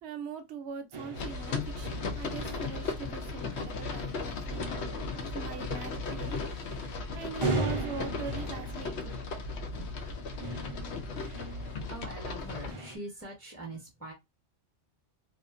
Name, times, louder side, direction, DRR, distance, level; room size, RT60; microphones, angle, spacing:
voice 1, 0.0-4.6 5.1-6.4 7.1-9.5 9.7-9.9, right 6 dB, 65° right, 0.8 m, -42 dB
sound 1, 0.9-13.0, right 2 dB, 50° right, 0.3 m, -40 dB
sound 2, 1.1-12.7, left 4 dB, 70° left, 0.8 m, -36 dB
voice 2, 11.1-14.1, right 2 dB, 10° left, 0.9 m, -44 dB
2.5 x 2.4 x 2.4 m
omnidirectional pair, 1.3 m